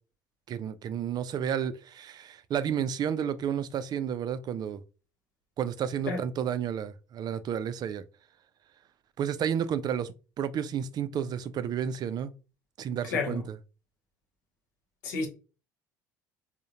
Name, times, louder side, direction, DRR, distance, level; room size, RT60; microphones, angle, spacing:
voice 1, 0.5-4.8 5.6-8.0 9.2-12.3 12.8-13.6, right 8 dB, 45° right, 0.4 m, -31 dB
voice 2, 13.1-13.4 15.0-15.3, left 4 dB, 75° left, 0.9 m, -30 dB
3.6 x 2.1 x 2.8 m
hypercardioid pair, 60°, 10 cm